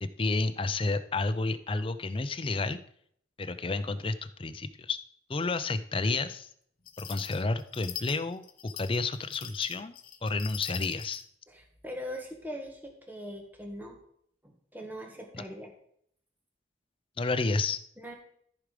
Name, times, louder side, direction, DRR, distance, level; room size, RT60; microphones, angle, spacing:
voice 1, 0.0-2.8 3.4-5.0 5.3-6.5 7.0-9.9 10.2-11.2 17.2-17.8, left 3 dB, 30° left, 11 dB, 0.5 m, -30 dB
sound 1, 6.8-11.2, left 10 dB, 50° left, 1.1 m, -43 dB
voice 2, 11.5-14.0 14.7-15.7 18.0-18.1, equal, 10° right, 2 dB, 1.4 m, -41 dB
14.0 x 4.9 x 5.0 m, 0.66 s
head